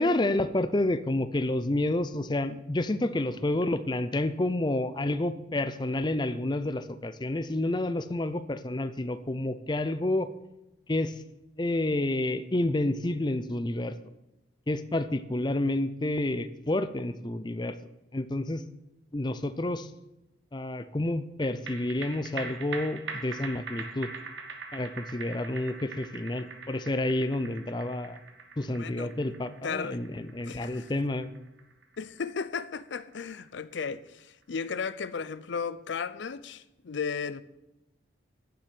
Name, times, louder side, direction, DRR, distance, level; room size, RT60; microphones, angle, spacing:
voice 1, 0.0-10.3 10.9-11.2 11.6-13.9 14.7-17.8 18.1-18.6 19.1-19.9 20.5-24.1 24.7-28.2 28.6-31.3, left 1 dB, 25° left, 0.5 m, -29 dB
sound 1, 21.4-34.1 34.4-34.5, right 4 dB, 75° right, 1.6 m, -43 dB
voice 2, 28.8-29.1 29.6-30.0 30.4-30.9 32.0-37.4, left 5 dB, 70° left, 0.5 m, -35 dB
9.7 x 7.5 x 9.1 m
head